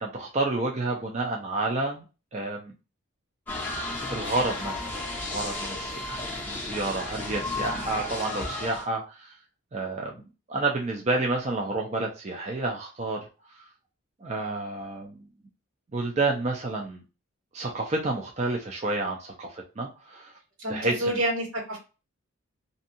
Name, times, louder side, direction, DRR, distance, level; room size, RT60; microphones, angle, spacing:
voice 1, 0.0-2.0 2.3-2.7 4.1-9.3 9.7-10.2 10.5-13.2 14.2-15.2 15.9-17.0 17.5-20.3 20.7-21.2, right 2 dB, 30° right, 0 dB, 0.4 m, -30 dB
sound 1, 3.5-8.9, left 2 dB, 10° left, 0.6 m, -33 dB
voice 2, 20.6-21.8, right 1 dB, 85° right, -1 dB, 1.4 m, -28 dB
2.6 x 2.2 x 2.6 m, 0.31 s
head